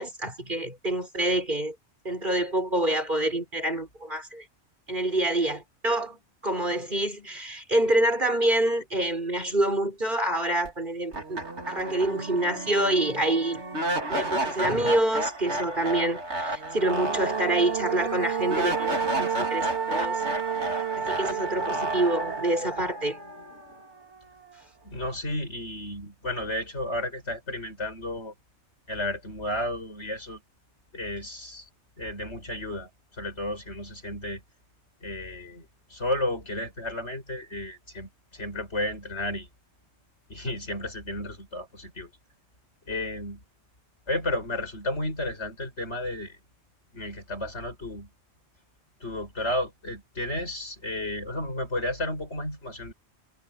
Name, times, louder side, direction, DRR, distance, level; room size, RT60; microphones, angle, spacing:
voice 1, 0.0-1.7 2.0-4.4 4.9-11.4 11.7-13.6 14.1-20.2 20.7-23.2, right 1 dB, 45° right, 6.4 m, -27 dB
sound 1, 10.6-10.7 11.1-24.2, right 3 dB, 85° right, 3.3 m, -30 dB
voice 2, 24.8-28.3 28.9-30.4 30.9-31.7 32.0-34.4 35.0-39.5 40.3-42.1 42.9-43.4 44.1-46.4 46.9-48.1 49.0-52.9, left 1 dB, 90° left, 6.9 m, -32 dB
omnidirectional pair, 1.1 m